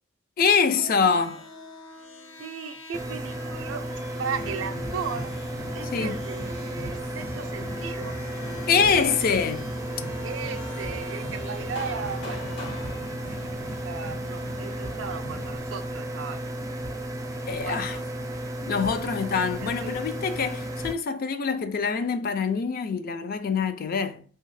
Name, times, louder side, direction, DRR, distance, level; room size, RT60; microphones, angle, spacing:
voice 1, 0.4-1.4 5.9-6.2 8.7-9.7 17.5-18.0 18.6-24.2, left 5 dB, 50° left, 0.3 m, -25 dB
sound 1, 1.0-13.5, left 2 dB, 90° left, 0.7 m, -44 dB
voice 2, 2.4-5.3 5.7-8.2 10.2-12.4 13.3-13.6 13.8-16.5 17.6-18.1 19.8-20.1, right 6 dB, 80° right, 0.4 m, -36 dB
sound 2, 2.9-20.9, right 1 dB, 20° right, 0.4 m, -34 dB
sound 3, 4.3-15.6, equal, 70° left, 1.2 m, -40 dB
2.7 x 2.3 x 3.2 m
head